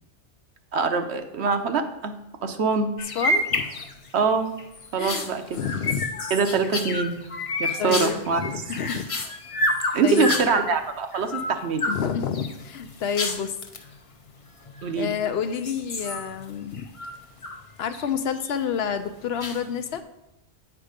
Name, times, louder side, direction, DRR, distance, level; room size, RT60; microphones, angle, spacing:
voice 1, 0.7-2.1 2.4-2.9 4.1-4.5 4.9-5.6 6.3-7.2 7.6-8.4 9.9-11.9 14.8-15.1, right 5 dB, 70° right, 7 dB, 1.0 m, -24 dB
sound 1, 3.0-4.2 4.6-10.7 11.1-12.0 12.3-13.8 14.6-15.2 15.5-17.6 17.9-18.5 19.4-19.9, left 1 dB, 35° left, 0.7 m, -29 dB
voice 2, 3.1-3.8 5.0-5.3 5.5-6.1 7.8-9.1 10.0-10.4 11.9-13.6 14.9-16.8 17.8-20.0, left 7 dB, 70° left, 9 dB, 0.8 m, -28 dB
9.1 x 4.9 x 5.0 m, 0.89 s
omnidirectional pair, 1.2 m